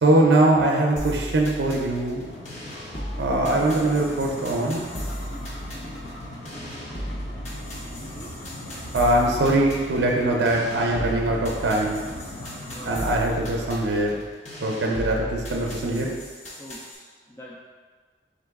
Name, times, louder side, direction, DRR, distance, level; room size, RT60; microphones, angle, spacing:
voice 1, 0.0-2.3 3.2-4.8 8.9-12.0 12.9-14.2 14.6-16.1, right 1 dB, 80° right, 0 dB, 0.5 m, -22 dB
sound 1, 1.0-17.0, equal, 40° left, 0.7 m, -36 dB
sound 2, 2.2-13.2, left 1 dB, 80° left, 0.8 m, -39 dB
voice 2, 8.0-8.3 12.7-13.0 16.6-17.6, equal, 15° left, -5 dB, 0.3 m, -44 dB
4.0 x 3.0 x 3.5 m, 1.5 s
head